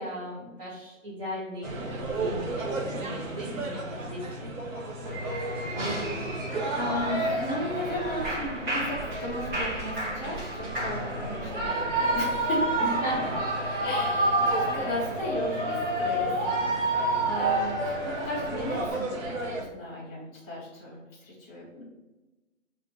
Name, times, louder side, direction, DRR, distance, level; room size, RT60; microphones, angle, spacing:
voice 1, 0.0-1.8 2.1-4.5 12.8-13.9, equal, 20° right, -11 dB, 1.1 m, -37 dB
sound 1, 1.6-19.6, right 2 dB, 85° right, 0.9 m, -36 dB
Shout / Cheering, 5.0-18.9, right 1 dB, 35° right, 1.4 m, -29 dB
voice 2, 6.7-12.6 13.8-21.8, left 1 dB, 10° left, -7 dB, 0.7 m, -36 dB
3.3 x 2.4 x 4.5 m, 1.1 s
hypercardioid pair, 155°, 39 cm